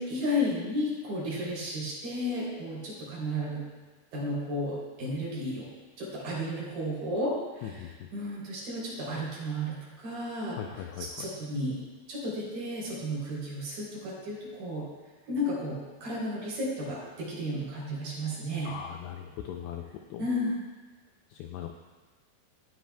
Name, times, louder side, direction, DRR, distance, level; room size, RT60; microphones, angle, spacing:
voice 1, 0.0-3.6 4.1-5.7 6.0-11.8 12.1-14.9 15.3-18.7 19.6-19.7 20.2-20.6, left 1 dB, 50° right, -7 dB, 4.6 m, -33 dB
voice 2, 7.6-8.1 10.6-11.3 18.6-20.2 21.3-21.7, left 9 dB, 90° left, 3 dB, 2.4 m, -39 dB
15.5 x 9.4 x 2.3 m, 1.3 s
omnidirectional pair, 5.4 m